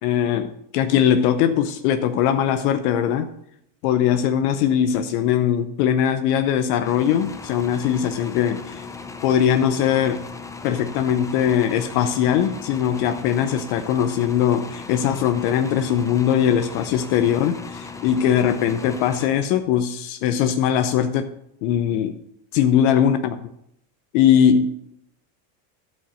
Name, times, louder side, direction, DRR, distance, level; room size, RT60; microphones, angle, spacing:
voice 1, 0.0-3.3 3.8-8.8 9.2-10.2 10.6-21.3 21.6-22.2 22.5-23.5 24.1-25.0, left 9 dB, 65° left, 0.8 m, -20 dB
sound 1, 6.8-19.8, left 4 dB, 5° left, 0.4 m, -37 dB
12.0 x 5.3 x 6.3 m
supercardioid pair, 140°, 49 cm